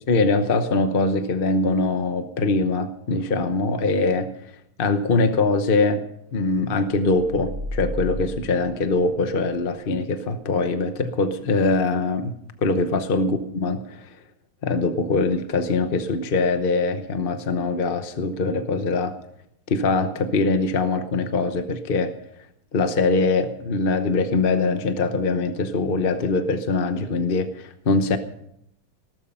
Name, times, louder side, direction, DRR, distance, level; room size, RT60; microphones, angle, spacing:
voice 1, 0.1-4.3 4.8-6.0 6.3-12.3 12.6-14.1 14.6-19.1 19.7-22.1 22.7-28.2, left 3 dB, 45° left, 8 dB, 0.7 m, -22 dB
sound 1, 6.9-9.5, equal, 55° right, 3.5 m, -34 dB
18.5 x 13.0 x 5.6 m, 0.75 s
omnidirectional pair, 2.2 m